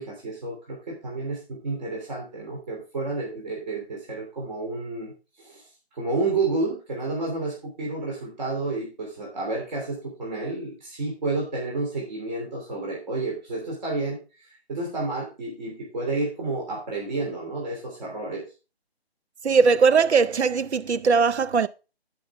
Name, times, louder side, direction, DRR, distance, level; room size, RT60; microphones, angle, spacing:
voice 1, 0.0-5.1 5.4-5.6 5.9-18.4, right 3 dB, 40° right, 3.2 m, -30 dB
voice 2, 19.4-21.7, right 5 dB, 90° right, 0.6 m, -20 dB
14.0 x 5.5 x 3.5 m
figure-of-eight pair, 160°, 32 cm